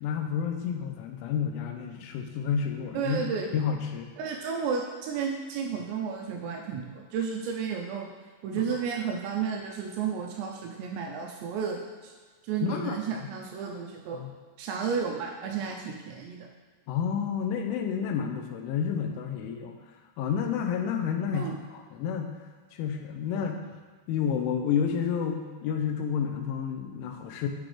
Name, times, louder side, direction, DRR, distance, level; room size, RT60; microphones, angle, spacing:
voice 1, 0.0-3.2 3.5-4.1 8.6-8.7 12.6-13.3 14.1-14.3 16.9-19.8 20.2-22.4 22.7-23.6 24.1-27.5, left 7 dB, 85° left, 4 dB, 3.1 m, -30 dB
voice 2, 2.9-3.5 4.2-8.1 8.4-12.1 12.4-14.2 14.6-16.5 21.3-21.5 23.3-23.5, right 6 dB, 80° right, 1 dB, 2.6 m, -32 dB
10.0 x 6.1 x 3.3 m, 1.4 s
omnidirectional pair, 5.5 m